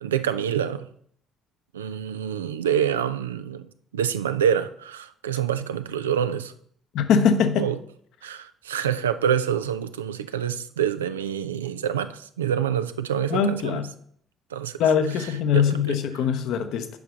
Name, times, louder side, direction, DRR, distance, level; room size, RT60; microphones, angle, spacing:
voice 1, 0.0-0.9 1.7-3.6 3.9-6.5 7.6-7.7 8.2-13.8 14.5-14.8 15.2-15.3 15.5-16.0, right 8 dB, 80° right, 0.4 m, -26 dB
voice 2, 6.9-7.7 13.3-13.9 14.8-16.9, left 7 dB, 60° left, 0.7 m, -22 dB
7.1 x 4.7 x 5.1 m
figure-of-eight pair, 50°, 0 cm